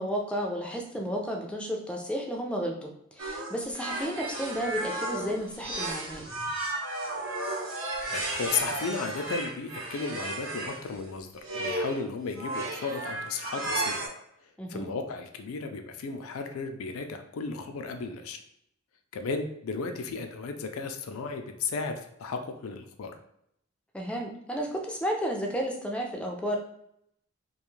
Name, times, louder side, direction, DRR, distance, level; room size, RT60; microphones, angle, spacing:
voice 1, 0.0-6.3 14.6-14.9 23.9-26.6, equal, 5° left, 0 dB, 0.3 m, -32 dB
sound 1, 3.2-10.8 11.4-12.0 12.4-14.1, right 2 dB, 75° right, 0.8 m, -34 dB
voice 2, 8.1-11.3 11.5-14.0 14.7-18.4 19.1-23.1, left 4 dB, 85° left, 6 dB, 0.4 m, -34 dB
2.4 x 2.3 x 3.0 m, 0.74 s
head